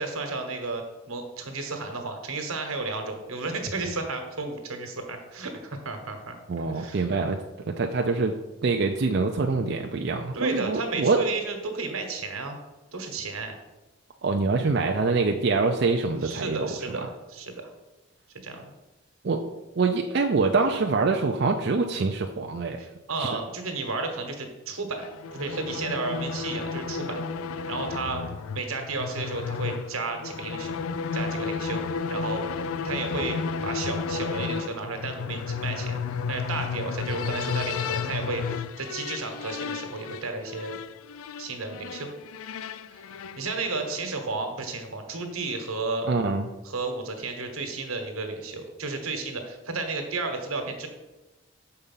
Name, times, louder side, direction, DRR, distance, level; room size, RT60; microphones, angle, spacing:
voice 1, 0.0-6.4 6.7-7.1 10.3-12.6 12.9-13.6 16.2-17.7 18.4-18.7 22.8-27.2 27.7-28.2 28.5-30.8 31.1-31.8 32.1-36.0 36.3-40.8 41.4-42.1 42.9-43.0 43.4-46.1 46.6-50.9, right 3 dB, 85° right, 5 dB, 1.3 m, -33 dB
voice 2, 6.5-7.4 7.8-8.3 8.6-11.2 14.2-17.0 19.2-19.4 19.8-22.8 23.2-23.3 46.1-46.5, right 4 dB, 50° right, 3 dB, 0.4 m, -25 dB
sound 1, 25.0-44.1, left 5 dB, 85° left, 0.4 m, -33 dB
6.7 x 4.7 x 5.6 m, 1.1 s
head